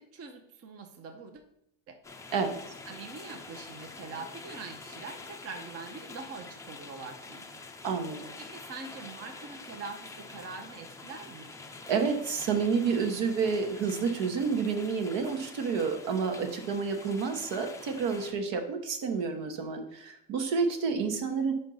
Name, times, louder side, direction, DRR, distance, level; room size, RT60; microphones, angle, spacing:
voice 1, 0.0-1.4 1.9-2.0 2.9-7.6 8.4-11.5, right 4 dB, 30° right, 5 dB, 0.7 m, -44 dB
sound 1, 2.0-18.3, left 3 dB, 5° left, 0.4 m, -46 dB
voice 2, 7.8-8.3 11.9-21.5, right 5 dB, 65° right, 5 dB, 1.2 m, -29 dB
5.4 x 4.5 x 5.4 m, 0.78 s
cardioid pair, 120°, 48 cm